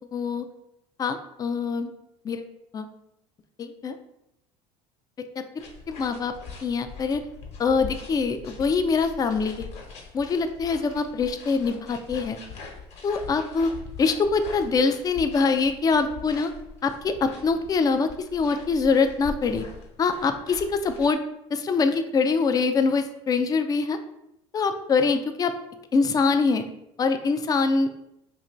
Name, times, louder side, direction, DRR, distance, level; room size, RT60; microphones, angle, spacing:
voice 1, 0.1-0.5 1.0-1.9 2.2-2.4 2.7-2.9 3.6-4.0 5.6-6.3 6.6-7.2 7.6-9.7 10.1-12.4 13.0-13.7 14.0-16.5 16.8-19.6 20.0-21.2 21.5-24.0 24.5-25.5 25.9-26.6 27.0-27.9, left 4 dB, 25° left, 8 dB, 0.4 m, -24 dB
sound 1, 5.6-21.1, left 4 dB, 50° left, 1.0 m, -42 dB
2.8 x 2.6 x 4.3 m, 0.83 s
supercardioid pair, 100°, 14 cm